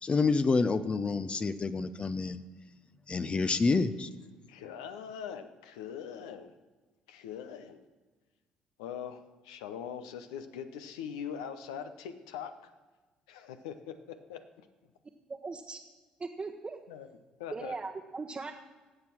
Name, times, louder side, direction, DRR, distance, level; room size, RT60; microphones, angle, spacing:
voice 1, 0.0-2.4 3.1-4.1, left 4 dB, 30° left, 0.7 m, -28 dB
voice 2, 4.5-6.5 7.1-7.8 8.8-12.6 13.3-14.7 16.9-17.1 17.4-17.7, left 8 dB, 80° left, 0.8 m, -42 dB
voice 3, 15.3-15.8 16.2-16.8 17.5-18.5, right 4 dB, 30° right, 1.0 m, -39 dB
18.0 x 7.2 x 6.0 m
hypercardioid pair, 50°, 4 cm